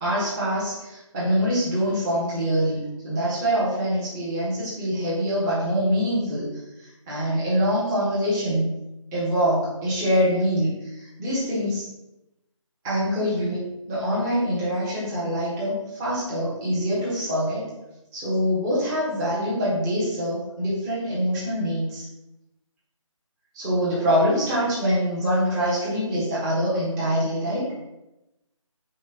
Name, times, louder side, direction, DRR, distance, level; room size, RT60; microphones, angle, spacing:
voice 1, 0.0-2.8 3.0-6.5 6.8-8.7 9.1-11.8 12.8-17.6 18.1-22.0 23.5-27.7, equal, 10° right, -10 dB, 1.2 m, -24 dB
4.5 x 4.2 x 5.2 m, 0.94 s
figure-of-eight pair, 165°, 17 cm